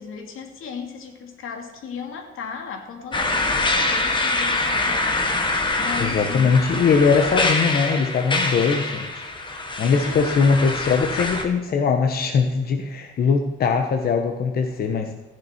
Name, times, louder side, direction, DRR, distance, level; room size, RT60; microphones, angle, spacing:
voice 1, 0.0-5.0 5.8-6.5 9.8-10.3, left 6 dB, 80° left, 3 dB, 2.4 m, -35 dB
sound 1, 3.1-11.4, left 2 dB, 25° left, 1.4 m, -24 dB
voice 2, 6.0-9.2 9.8-15.1, left 5 dB, 50° left, 4 dB, 1.1 m, -21 dB
15.0 x 10.5 x 4.4 m, 1.1 s
cardioid pair, 170°, 21 cm